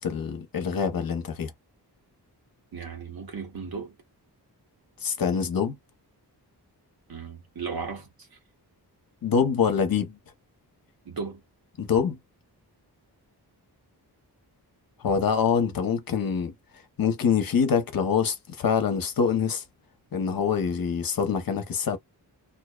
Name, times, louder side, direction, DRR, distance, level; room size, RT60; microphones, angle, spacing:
voice 1, 0.0-1.5 5.0-5.8 9.2-10.2 11.8-12.2 15.0-16.5 17.0-19.6 20.1-22.0, left 6 dB, 60° left, 0.8 m, -25 dB
voice 2, 2.7-4.0 7.1-8.1 11.0-11.4, right 5 dB, 60° right, 1.2 m, -35 dB
2.5 x 2.1 x 2.3 m
wide cardioid pair, 110°, 40 cm